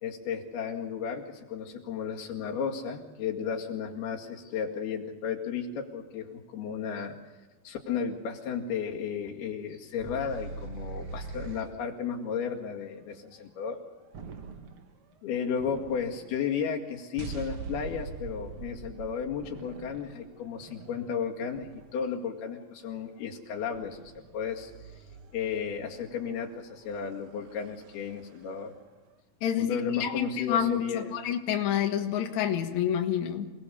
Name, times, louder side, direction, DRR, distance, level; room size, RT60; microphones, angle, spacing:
voice 1, 0.0-7.2 7.7-13.8 15.2-24.0 24.3-24.7 25.3-28.7 29.6-31.2, left 7 dB, 85° left, 1 dB, 4.1 m, -33 dB
sound 1, 10.0-11.8 14.1-15.0 15.6-16.4 17.2-22.3 23.7-28.6, right 4 dB, 50° right, 1.8 m, -43 dB
voice 2, 29.4-33.5, left 9 dB, 55° left, 4 dB, 2.6 m, -28 dB
28.0 x 19.5 x 7.0 m, 1.2 s
omnidirectional pair, 4.3 m